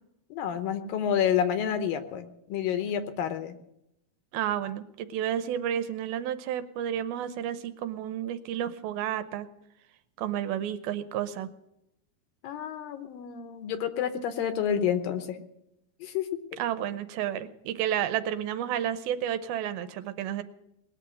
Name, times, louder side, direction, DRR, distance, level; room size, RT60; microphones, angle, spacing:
voice 1, 0.3-3.6 12.4-15.4 16.0-16.3, left 9 dB, 75° left, 9 dB, 2.5 m, -29 dB
voice 2, 4.3-9.5 10.2-11.5 16.6-20.4, right 10 dB, 80° right, 11 dB, 2.6 m, -31 dB
20.0 x 7.0 x 9.9 m, 0.82 s
omnidirectional pair, 4.4 m